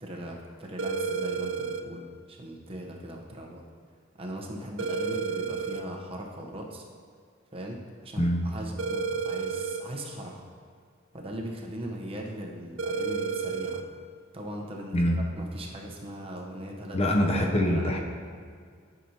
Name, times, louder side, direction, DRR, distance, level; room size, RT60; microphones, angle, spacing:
voice 1, 0.0-3.6 4.2-6.8 7.5-10.5 11.1-13.8 14.3-17.1 17.7-18.0, right 1 dB, 30° right, 0 dB, 0.8 m, -39 dB
sound 1, 0.8-1.8 4.8-5.8 8.8-9.8 12.8-13.8, right 5 dB, 65° right, 0.5 m, -31 dB
voice 2, 8.2-8.5 14.9-15.2 16.9-18.0, equal, 30° left, 1 dB, 0.6 m, -24 dB
10.5 x 5.9 x 2.8 m, 2.1 s
head